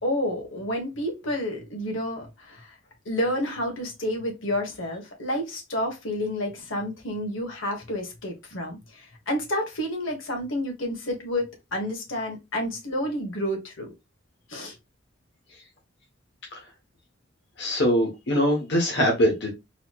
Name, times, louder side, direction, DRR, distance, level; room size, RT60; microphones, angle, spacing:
voice 1, 0.0-2.7 3.0-13.9 14.5-14.7, left 1 dB, 80° left, 1.3 m, -30 dB
voice 2, 17.6-19.5, equal, 60° left, 1.0 m, -22 dB
4.1 x 2.9 x 2.3 m
head